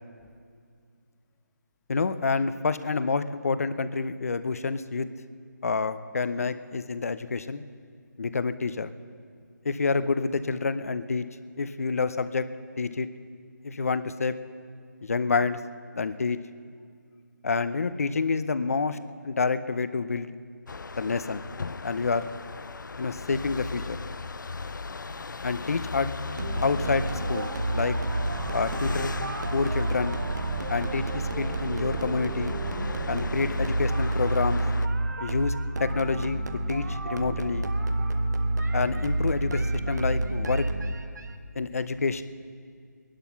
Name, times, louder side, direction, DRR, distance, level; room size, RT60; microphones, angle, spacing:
voice 1, 1.9-5.1 5.6-7.6 8.2-8.9 9.6-11.3 11.6-12.5 12.8-13.1 13.6-14.4 15.0-15.6 15.9-16.4 17.4-19.0 19.2-20.3 20.9-21.4 21.8-22.3 23.0-24.0 25.4-26.1 26.6-28.0 28.5-29.2 29.5-30.2 30.7-32.6 33.1-34.6 35.2-36.4 36.7-37.7 38.7-40.7 41.6-42.2, left 4 dB, 50° left, 13 dB, 0.7 m, -28 dB
sound 1, 20.7-34.9, left 4 dB, 85° left, 0.5 m, -37 dB
voice 2, 22.7-23.2 24.3-25.4 26.5-26.6 28.3-28.6 29.7-29.8 30.5-30.7 35.0-35.1 41.0-41.2, left 6 dB, 5° left, 4 dB, 0.6 m, -59 dB
sound 2, 26.4-41.3, right 2 dB, 65° right, 1.1 m, -29 dB
20.0 x 11.5 x 5.9 m, 2.2 s
figure-of-eight pair, 170°, 10 cm